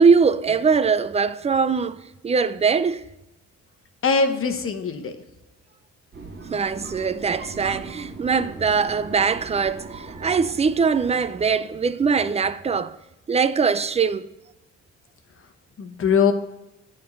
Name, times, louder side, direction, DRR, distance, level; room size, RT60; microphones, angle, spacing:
voice 1, 0.0-3.0 6.5-13.0 13.3-14.3, right 5 dB, 20° right, 0.4 m, -21 dB
voice 2, 4.0-5.1 15.8-16.3, left 5 dB, 45° left, 1.1 m, -21 dB
sound 1, 6.1-11.7, right 3 dB, 40° right, 1.8 m, -40 dB
9.3 x 3.7 x 7.0 m
cardioid pair, 90°, 30 cm